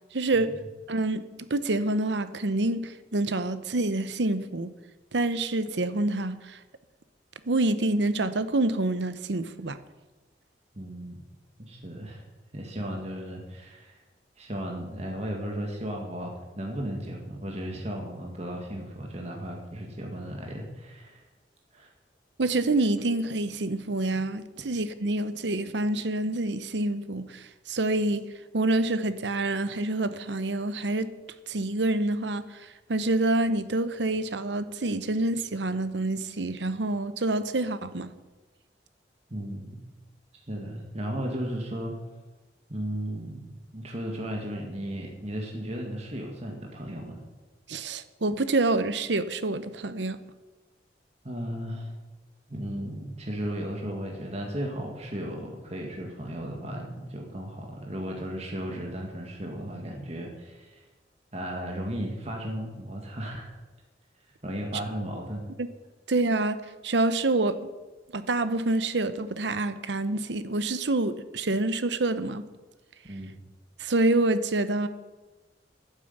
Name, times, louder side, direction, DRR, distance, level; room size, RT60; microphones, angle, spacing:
voice 1, 0.1-0.5 0.9-1.2 1.5-4.7 5.1-6.6 7.5-9.8 22.4-28.2 28.5-31.1 31.5-38.1 47.7-50.2 65.6-65.7 66.1-67.6 68.1-72.4 73.8-74.9, right 2 dB, 80° right, 0.9 m, -27 dB
voice 2, 10.7-11.2 11.6-12.2 12.5-14.0 14.4-21.2 21.7-21.9 39.3-39.8 40.3-42.0 42.7-47.2 51.2-51.9 52.5-60.9 61.3-63.5 64.4-65.4 73.0-73.3, equal, 35° right, 2.0 m, -35 dB
11.5 x 9.4 x 8.0 m
head